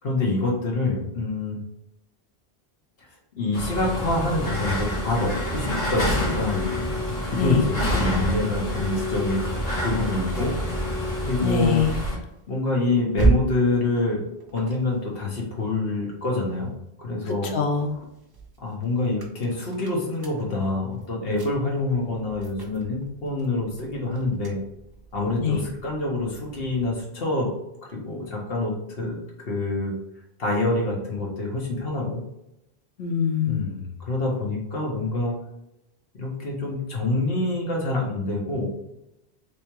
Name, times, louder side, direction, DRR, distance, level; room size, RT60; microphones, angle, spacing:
voice 1, 0.0-1.6 3.4-6.8 7.2-9.5 9.8-10.5 11.2-11.8 12.5-14.2 14.5-16.7 17.0-17.5 18.6-24.6 25.1-27.5 27.9-30.0 30.4-32.2 33.5-35.3 36.1-38.7, left 2 dB, 65° left, -2 dB, 1.3 m, -26 dB
sound 1, 3.5-12.2, left 1 dB, 50° left, 1.5 m, -27 dB
voice 2, 7.3-7.6 11.4-12.0 17.3-17.9 25.4-25.6 33.0-33.6, left 7 dB, 80° left, 4 dB, 1.0 m, -24 dB
sound 2, 11.0-16.8 17.3-27.1, right 4 dB, 30° right, 0.5 m, -34 dB
3.4 x 3.3 x 3.0 m, 0.87 s
omnidirectional pair, 1.1 m